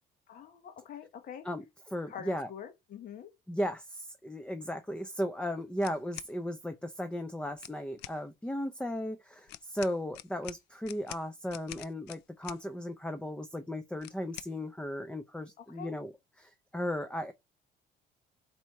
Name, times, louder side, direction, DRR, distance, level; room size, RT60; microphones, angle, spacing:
voice 1, 0.3-1.5 2.1-3.3 15.6-16.0, left 7 dB, 55° left, 1.0 m, -45 dB
voice 2, 1.9-2.5 3.5-16.1 16.4-17.3, equal, 5° left, 0.5 m, -36 dB
sound 1, 5.8-6.3 7.5-8.2 9.5-12.6 14.0-14.5, left 15 dB, 85° left, 0.4 m, -46 dB
4.2 x 2.7 x 4.5 m
cardioid pair, 110°, 17 cm